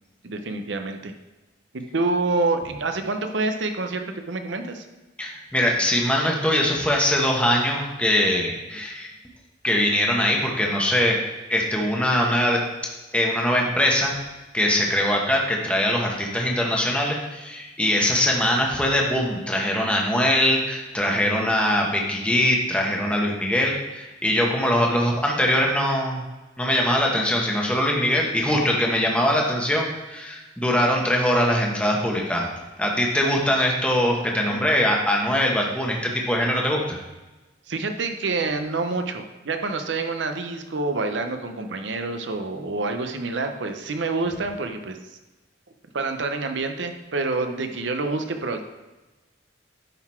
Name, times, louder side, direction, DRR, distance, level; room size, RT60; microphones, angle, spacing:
voice 1, 0.2-1.1 1.7-4.8 34.4-34.6 37.7-45.0 45.9-48.6, right 3 dB, 75° right, 6 dB, 0.7 m, -27 dB
voice 2, 5.2-9.1 9.6-11.2 11.5-12.6 13.1-14.1 14.5-26.2 26.6-32.5 32.8-37.0, left 1 dB, 5° left, -1 dB, 1.1 m, -22 dB
10.5 x 4.0 x 4.4 m, 1.1 s
head